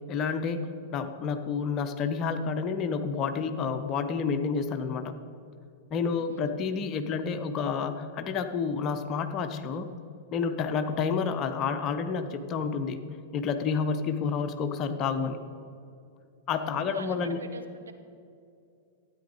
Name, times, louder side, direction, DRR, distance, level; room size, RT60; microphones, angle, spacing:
voice 1, 0.1-5.1 5.9-9.9 10.3-13.0 13.3-15.4 16.5-17.4, left 5 dB, 35° left, 8 dB, 0.8 m, -29 dB
voice 2, 6.1-6.6 16.7-17.9, right 4 dB, 70° right, 6 dB, 1.0 m, -44 dB
13.0 x 9.2 x 4.8 m, 2.5 s
figure-of-eight pair, 95°, 0 cm